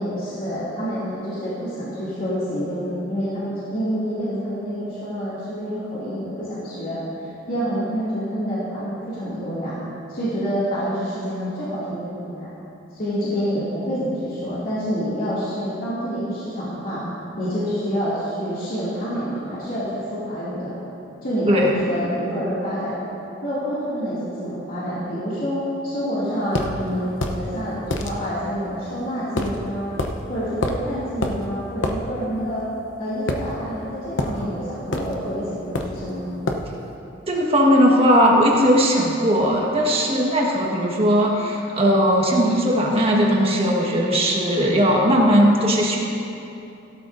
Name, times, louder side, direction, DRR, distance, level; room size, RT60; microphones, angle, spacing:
voice 1, 0.0-9.8 10.1-12.5 12.9-17.0 17.4-20.8 21.2-23.0 23.4-29.9 30.3-32.6 33.0-36.3, equal, 50° left, -11 dB, 2.6 m, -27 dB
sound 1, 26.5-26.7 27.2-27.4 27.9-28.1 29.4-29.6 30.0-30.1 30.6-30.9 31.2-31.4 31.8-32.0 33.3-33.8 34.2-34.4 34.9-35.2 35.7-36.0 36.5-36.7, left 2 dB, 75° left, 0.9 m, -25 dB
voice 2, 37.3-46.0, equal, 30° right, -2 dB, 1.5 m, -18 dB
16.5 x 12.5 x 2.7 m, 2.8 s
head